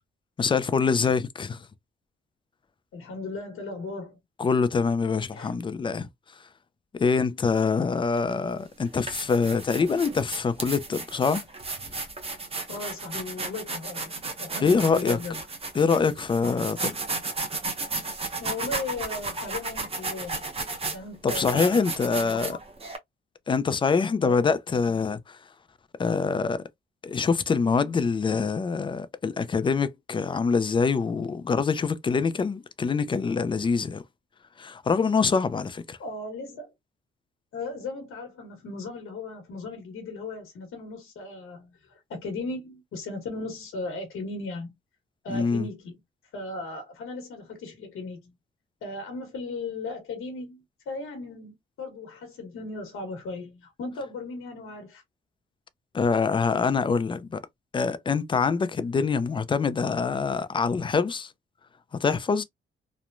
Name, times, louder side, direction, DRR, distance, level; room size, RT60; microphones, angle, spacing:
voice 1, 0.4-1.7 4.4-6.1 6.9-11.4 14.6-15.2 15.7-17.0 21.2-22.6 23.5-25.4 26.0-26.6 27.0-34.0 34.6-36.0 45.3-45.7 55.9-57.4 57.7-61.3 61.9-62.4, left 5 dB, 25° left, 0.3 m, -25 dB
voice 2, 2.9-4.2 5.3-5.5 12.7-15.3 18.4-20.5 20.9-22.6 24.2-24.4 36.0-36.7 37.5-44.7 45.2-46.0 46.3-48.3 48.8-55.0, left 3 dB, 80° left, 1.0 m, -37 dB
sound 1, 8.2-8.3 8.8-23.0, right 3 dB, 30° right, 0.7 m, -34 dB
3.0 x 2.1 x 2.4 m
cardioid pair, 110°, 21 cm